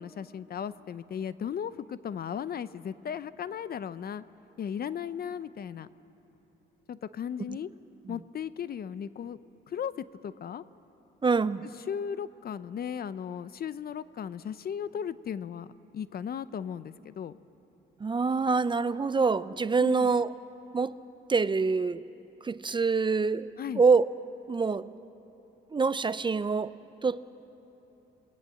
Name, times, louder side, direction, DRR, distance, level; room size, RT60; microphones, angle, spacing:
voice 1, 0.0-4.2 4.6-5.9 6.9-7.7 8.1-9.4 9.7-10.6 11.9-17.4 19.8-20.1 23.6-23.8, left 8 dB, 50° left, 15 dB, 0.7 m, -36 dB
voice 2, 11.2-11.7 18.0-20.3 20.7-20.9 21.3-22.0 22.4-24.1 24.5-24.9 25.7-26.7 27.0-27.2, right 4 dB, 25° right, 15 dB, 0.5 m, -25 dB
28.0 x 19.0 x 7.7 m, 3.0 s
cardioid pair, 90°, 20 cm